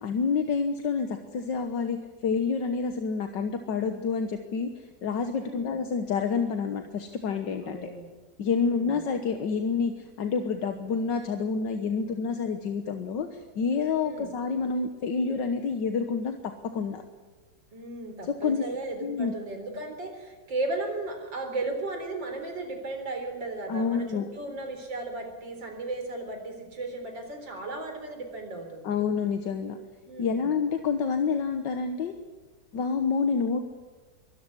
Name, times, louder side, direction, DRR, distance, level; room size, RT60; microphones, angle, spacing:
voice 1, 0.0-4.7 5.0-7.9 8.4-17.0 18.2-18.6 19.0-19.3 23.7-24.3 28.8-29.8 30.2-32.2 32.7-33.6, left 5 dB, 75° left, 7 dB, 1.9 m, -28 dB
voice 2, 5.4-5.8 7.6-8.1 8.6-9.0 14.0-14.3 17.7-29.0 30.0-30.5, right 2 dB, 85° right, 4 dB, 4.5 m, -35 dB
23.0 x 13.5 x 9.9 m, 1.3 s
omnidirectional pair, 2.0 m